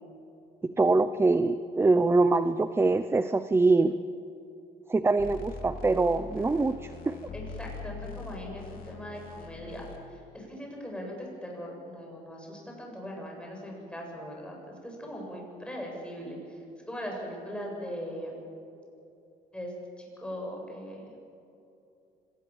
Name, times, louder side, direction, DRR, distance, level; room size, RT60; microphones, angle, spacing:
voice 1, 0.6-4.0 4.9-7.2, right 3 dB, 15° right, 12 dB, 0.6 m, -24 dB
sound 1, 5.2-10.0, left 3 dB, 55° left, 3.7 m, -42 dB
voice 2, 7.3-9.9 10.3-14.6 14.8-16.4 16.9-18.4 19.5-19.7 20.0-21.1, equal, 5° left, -1 dB, 7.6 m, -39 dB
25.0 x 19.0 x 7.3 m, 2.7 s
cardioid pair, 110°, 17 cm